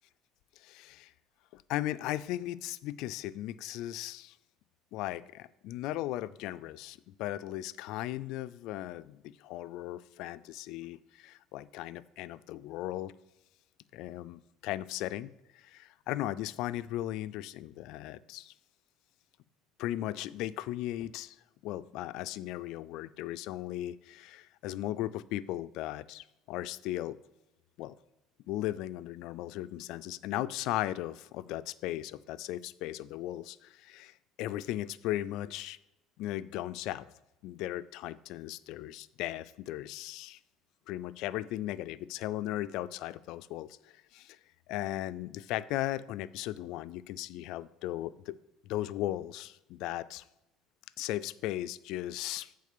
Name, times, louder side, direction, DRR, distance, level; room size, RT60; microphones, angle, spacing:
voice 1, 0.6-1.1 1.5-4.4 4.9-13.1 13.9-18.5 19.8-21.4 21.6-27.2 27.8-27.9 28.5-35.8 36.2-37.1 37.4-40.4 40.9-44.4 44.7-48.4 48.6-50.2 51.0-52.5, left 14 dB, 65° left, 15 dB, 0.3 m, -37 dB
8.5 x 3.7 x 6.7 m, 0.95 s
cardioid pair, 140°, 0 cm